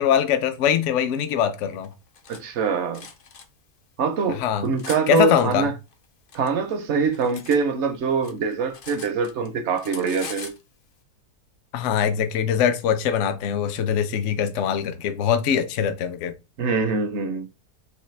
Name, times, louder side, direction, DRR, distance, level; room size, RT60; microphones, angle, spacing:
voice 1, 0.0-1.9 4.3-4.7 5.1-5.7 11.7-16.3, left 8 dB, 65° left, 0.8 m, -22 dB
Cutlery silverware, 1.8-2.4 2.9-3.5 4.1-5.0 5.9-7.6 7.9-9.5 9.8-10.6, left 5 dB, 90° left, 0.4 m, -41 dB
voice 2, 2.3-3.0 4.0-5.7 6.3-10.5 16.6-17.5, right 5 dB, 60° right, 0.8 m, -24 dB
4.1 x 2.8 x 3.1 m
omnidirectional pair, 1.6 m